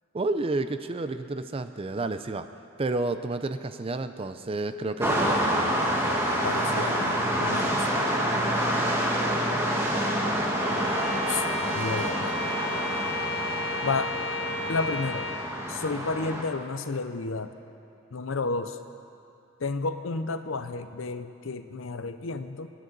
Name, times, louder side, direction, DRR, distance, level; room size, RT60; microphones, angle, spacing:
voice 1, 0.1-2.5 2.8-5.9 8.8-9.0, right 2 dB, 30° right, 10 dB, 0.4 m, -31 dB
sound 1, 5.0-16.4, equal, 10° right, 1.3 m, -27 dB
voice 2, 6.4-7.9 11.3-12.5 13.8-14.1 14.7-15.3 15.7-17.5 18.1-18.8 19.6-22.7, left 4 dB, 80° left, 10 dB, 0.6 m, -31 dB
Bowed string instrument, 10.6-15.5, left 2 dB, 30° left, 0.7 m, -33 dB
23.0 x 10.0 x 4.0 m, 2.6 s
head